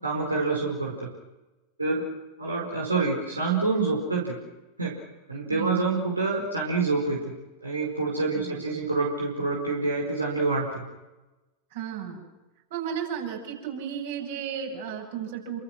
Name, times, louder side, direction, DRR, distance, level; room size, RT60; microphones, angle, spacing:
voice 1, 0.0-1.1 1.8-2.0 2.4-4.4 4.8-5.0 5.3-7.3 7.6-10.8, right 3 dB, 80° right, -2 dB, 4.9 m, -27 dB
voice 2, 5.5-5.9 8.3-8.8 11.7-12.2 12.7-15.6, right 8 dB, 55° right, 2 dB, 8.0 m, -34 dB
29.5 x 26.0 x 6.3 m, 1.1 s
figure-of-eight pair, 90°, 0 cm